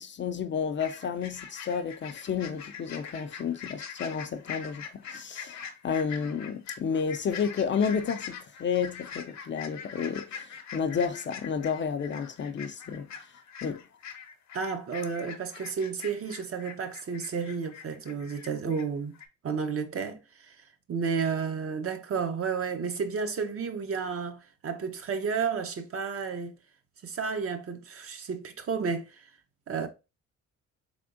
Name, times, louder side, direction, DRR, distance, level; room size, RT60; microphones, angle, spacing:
voice 1, 0.0-13.1 13.6-13.8, left 6 dB, 40° left, 0.4 m, -31 dB
sound 1, 0.8-18.9 19.1-19.3, left 7 dB, 65° left, 0.9 m, -43 dB
voice 2, 14.5-19.1 19.4-20.6 20.9-26.5 27.0-29.2 29.7-29.9, right 5 dB, 50° right, 0.8 m, -32 dB
3.5 x 3.4 x 2.5 m
cardioid pair, 90°, 30 cm